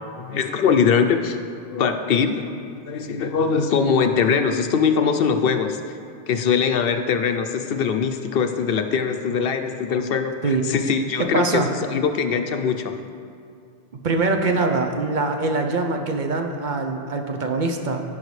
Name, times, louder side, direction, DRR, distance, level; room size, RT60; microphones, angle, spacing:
voice 1, 0.2-1.4 1.7-2.5 2.9-5.8 6.3-11.6 11.9-13.0, left 6 dB, 70° left, 7 dB, 0.8 m, -22 dB
voice 2, 11.2-11.7 14.0-18.0, right 3 dB, 55° right, 4 dB, 0.7 m, -23 dB
15.5 x 5.3 x 3.2 m, 2.4 s
omnidirectional pair, 1.0 m